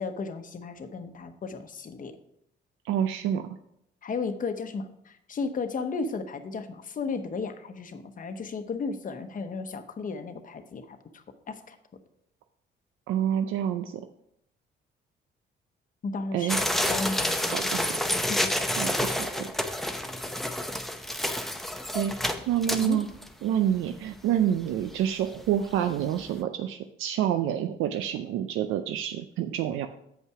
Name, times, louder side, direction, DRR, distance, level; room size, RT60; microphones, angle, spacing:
voice 1, 0.0-2.2 4.0-11.8 16.0-18.7 22.8-23.0, left 4 dB, 45° left, 8 dB, 0.9 m, -35 dB
voice 2, 2.8-3.6 13.1-14.0 16.3-16.6 17.4-18.0 18.8-19.5 21.9-22.1 22.5-23.1 23.4-29.9, right 10 dB, 85° right, 8 dB, 0.5 m, -28 dB
sound 1, 16.5-23.3 23.7-23.8 24.1-24.2 24.7-24.9 25.3-25.5 25.8-25.9, left 1 dB, ahead, 0.7 m, -29 dB
7.7 x 5.4 x 4.8 m, 0.76 s
cardioid pair, 90°, 20 cm